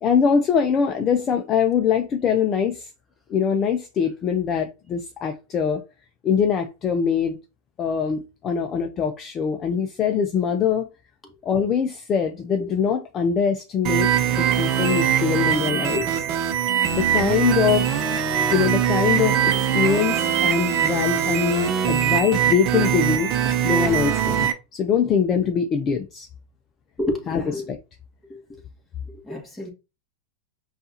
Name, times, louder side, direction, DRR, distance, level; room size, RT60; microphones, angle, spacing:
voice 1, 0.0-2.9 3.3-5.8 6.2-7.4 7.8-10.9 11.4-16.2 16.9-18.0 18.5-23.3 23.6-26.3 27.3-27.4 27.7-27.8, left 7 dB, 30° left, 0.5 m, -23 dB
sound 1, 13.8-24.5, right 9 dB, 45° right, 0.7 m, -22 dB
voice 2, 27.0-27.6 28.3-28.6 29.1-29.7, left 1 dB, 10° left, 1.5 m, -30 dB
5.4 x 2.5 x 2.8 m
hypercardioid pair, 125°, 0 cm